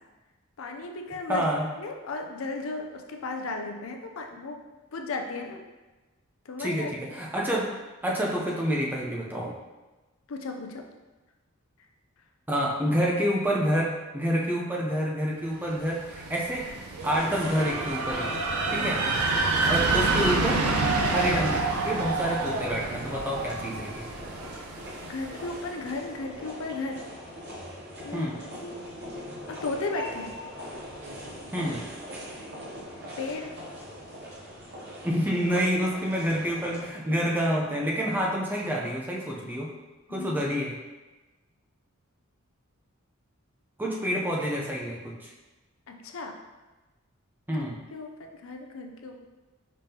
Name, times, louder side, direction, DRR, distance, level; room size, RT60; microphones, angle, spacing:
voice 1, 0.6-1.5 1.8-4.6 4.9-5.6 6.5-7.2 10.3-10.9 18.8-19.2 25.0-27.0 28.0-28.3 28.6-28.8 29.5-30.3 33.2-33.6 35.6-35.7 40.1-40.4 45.9-46.4 47.9-49.2, left 3 dB, 65° left, 3 dB, 0.5 m, -35 dB
voice 2, 1.3-1.7 6.6-7.7 8.0-9.5 12.5-16.7 17.0-18.3 18.7-19.0 19.7-20.6 21.0-24.1 28.1-28.4 31.5-31.8 35.0-39.7 40.1-40.7 43.8-45.3 47.5-47.8, equal, 10° right, -3 dB, 0.5 m, -28 dB
sound 1, 15.8-25.6, right 3 dB, 85° right, 0.6 m, -28 dB
sound 2, 17.0-36.9, equal, 50° right, 0.7 m, -41 dB
5.2 x 3.6 x 2.8 m, 1.2 s
head